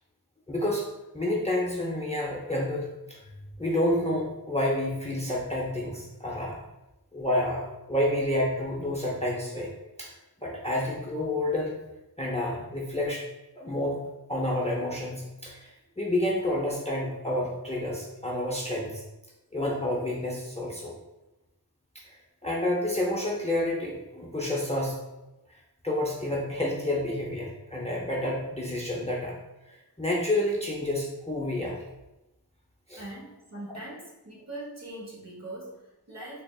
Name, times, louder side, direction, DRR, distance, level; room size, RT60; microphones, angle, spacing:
voice 1, 0.5-0.8 1.1-3.2 3.6-6.6 7.1-9.7 10.0-10.1 10.4-11.7 12.2-13.2 13.6-14.0 14.3-15.7 16.0-19.0 19.5-20.9 22.4-25.0 25.8-29.3 30.0-31.8 32.9-33.0, left 1 dB, 15° left, -3 dB, 0.6 m, -29 dB
voice 2, 32.9-36.4, right 1 dB, 45° right, -4 dB, 1.1 m, -41 dB
3.4 x 3.2 x 2.3 m, 0.96 s
wide cardioid pair, 50°, 39 cm